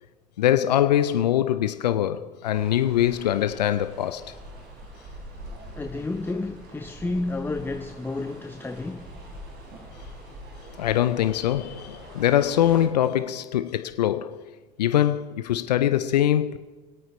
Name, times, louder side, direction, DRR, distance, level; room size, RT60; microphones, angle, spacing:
voice 1, 0.4-4.3 10.8-14.4 14.8-16.6, left 11 dB, 90° left, 0.5 m, -23 dB
sound 1, 2.5-12.9, right 1 dB, 55° right, 3.5 m, -44 dB
voice 2, 5.7-9.1, left 2 dB, 10° left, 0.6 m, -31 dB
26.0 x 8.8 x 3.1 m
hypercardioid pair, 75°, 20 cm